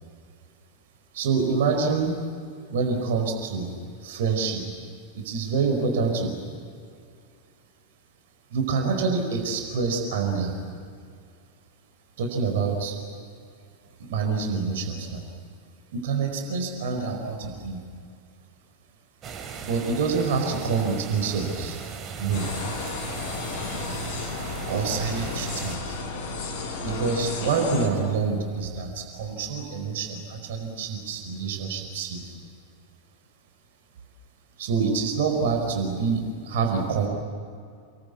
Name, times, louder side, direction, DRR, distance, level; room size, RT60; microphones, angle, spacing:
voice 1, 1.1-2.2 2.7-4.7 5.1-6.4 8.5-10.5 12.2-13.0 14.0-15.3 15.9-17.8 19.6-21.8 22.2-22.5 24.7-26.0 26.8-32.3 34.6-37.1, right 5 dB, 55° right, 3 dB, 4.9 m, -26 dB
sound 1, 19.2-25.8, right 6 dB, 30° right, 3.5 m, -38 dB
sound 2, 22.3-27.9, left 3 dB, 45° left, 6.4 m, -33 dB
30.0 x 22.5 x 8.6 m, 2.3 s
figure-of-eight pair, 90°, 0 cm